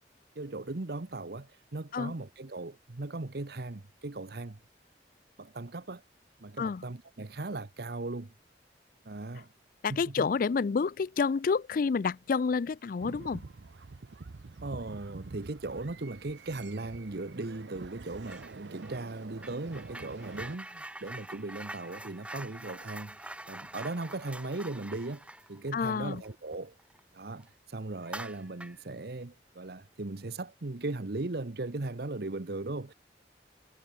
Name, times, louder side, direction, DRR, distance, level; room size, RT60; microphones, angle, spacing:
voice 1, 0.3-4.6 5.4-6.0 6.4-8.3 9.0-9.5 9.9-10.3 14.6-26.7 27.1-32.9, right 2 dB, 60° right, 1.0 m, -38 dB
voice 2, 9.8-13.4 25.7-26.2, left 5 dB, 50° left, 0.4 m, -29 dB
sound 1, 13.0-20.5, right 3 dB, 80° right, 0.7 m, -47 dB
sound 2, 18.2-18.6 18.8-27.0 27.4-27.5 28.0-28.9, right 1 dB, 5° right, 1.2 m, -45 dB
head